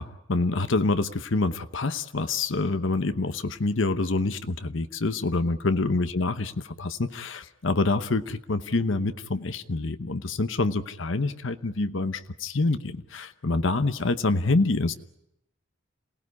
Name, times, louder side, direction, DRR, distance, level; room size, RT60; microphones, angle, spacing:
voice 1, 0.0-14.9, left 3 dB, 70° left, 10 dB, 1.0 m, -26 dB
28.0 x 17.5 x 9.6 m, 0.84 s
head